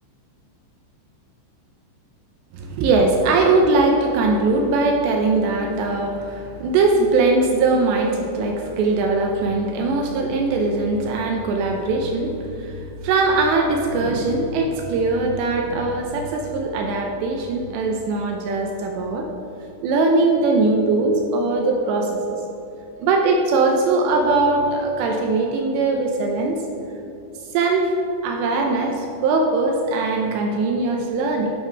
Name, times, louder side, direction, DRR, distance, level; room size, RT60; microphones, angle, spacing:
voice 1, 2.5-19.3 19.8-22.4 23.0-26.6 27.5-27.9 28.2-31.5, right 3 dB, 80° right, 2 dB, 2.6 m, -21 dB
12.0 x 5.0 x 5.7 m, 2.9 s
omnidirectional pair, 5.5 m